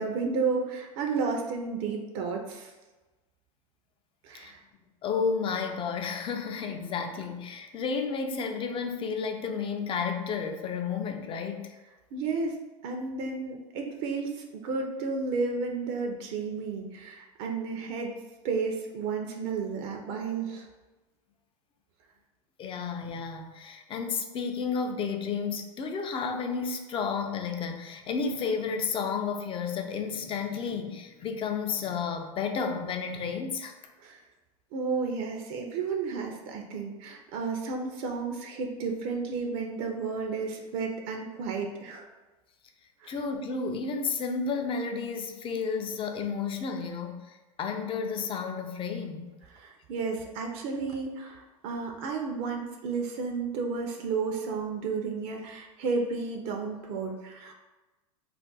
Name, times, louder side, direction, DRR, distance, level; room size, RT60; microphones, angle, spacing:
voice 1, 0.0-2.7 4.2-4.6 12.1-12.6 12.8-18.1 18.4-20.7 34.0-34.2 34.7-42.1 43.0-43.1 49.5-57.5, right 4 dB, 55° right, 2 dB, 0.5 m, -32 dB
voice 2, 5.0-11.7 22.6-33.7 43.1-49.3, left 5 dB, 25° left, 5 dB, 0.4 m, -32 dB
2.5 x 2.1 x 3.8 m, 1.2 s
hypercardioid pair, 100°, 20 cm